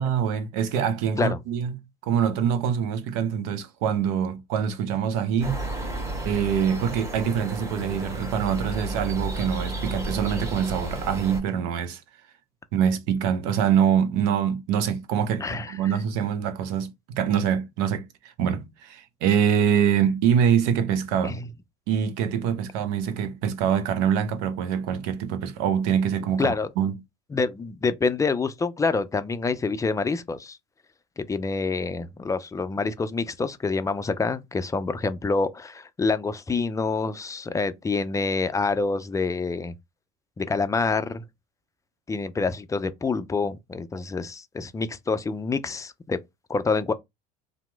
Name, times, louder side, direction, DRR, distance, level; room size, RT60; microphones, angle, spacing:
voice 1, 0.0-5.7 6.2-12.0 12.7-21.4 21.9-26.9, right 8 dB, 70° right, 0.7 m, -25 dB
sound 1, 5.4-11.4, right 1 dB, 15° right, 1.1 m, -32 dB
voice 2, 15.4-15.8 21.2-21.5 26.4-26.7 27.3-30.6 31.2-39.7 40.4-41.2 42.1-46.2 46.5-46.9, left 4 dB, 15° left, 0.4 m, -27 dB
2.9 x 2.0 x 3.3 m
hypercardioid pair, 80°, 21 cm